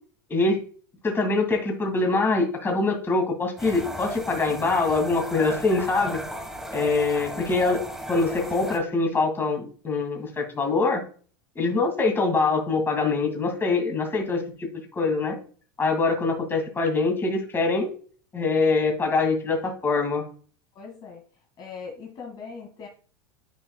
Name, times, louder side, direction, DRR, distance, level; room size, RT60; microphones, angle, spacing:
voice 1, 0.3-0.6 1.0-6.2 6.7-7.8 8.1-11.0 11.6-15.4 15.8-17.9 18.3-20.2, left 3 dB, 20° left, 3 dB, 2.2 m, -24 dB
sound 1, 3.6-8.8, equal, 5° right, 1.2 m, -36 dB
voice 2, 20.7-21.2 21.6-22.9, left 5 dB, 35° left, 1 dB, 1.8 m, -40 dB
10.0 x 4.8 x 2.2 m, 0.42 s
supercardioid pair, 115°, 12 cm